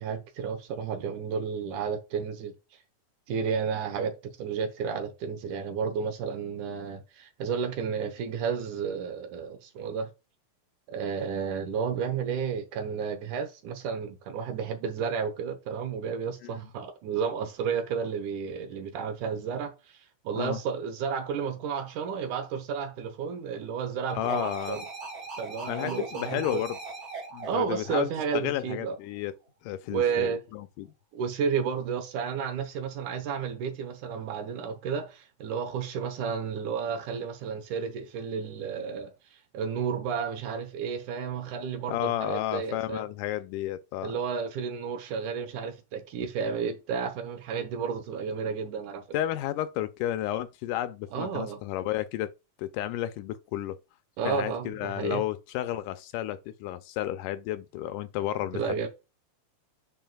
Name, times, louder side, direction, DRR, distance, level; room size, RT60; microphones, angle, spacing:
voice 1, 0.0-2.5 3.3-10.1 10.9-20.0 20.2-24.9 25.4-26.6 27.5-29.0 29.9-30.4 31.1-39.1 39.5-43.1 44.0-49.0 51.1-51.6 54.2-55.2 58.5-58.9, right 6 dB, 70° right, 2.3 m, -32 dB
voice 2, 24.1-24.8 25.7-26.8 27.3-29.3 29.6-30.9 41.9-44.1 49.1-52.3 52.6-53.8 54.3-58.7, left 13 dB, 80° left, 2.0 m, -32 dB
sound 1, 24.1-29.0, right 3 dB, 20° right, 3.1 m, -41 dB
9.0 x 4.7 x 2.3 m
omnidirectional pair, 3.9 m